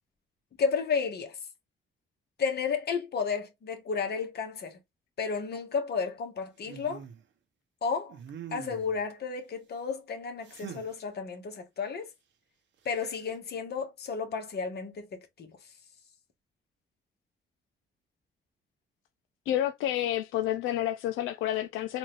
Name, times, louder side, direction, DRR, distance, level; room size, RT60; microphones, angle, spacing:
voice 1, 0.6-1.4 2.4-4.8 5.2-7.0 7.8-8.2 8.5-12.1 12.8-15.5, left 5 dB, 55° left, 1.4 m, -32 dB
sound 1, 6.6-7.2 8.1-9.0 10.4-10.9 12.9-13.3, right 8 dB, 65° right, 0.9 m, -44 dB
voice 2, 19.5-22.0, left 12 dB, 90° left, 0.5 m, -29 dB
3.9 x 2.6 x 3.2 m
cardioid pair, 90°, 20 cm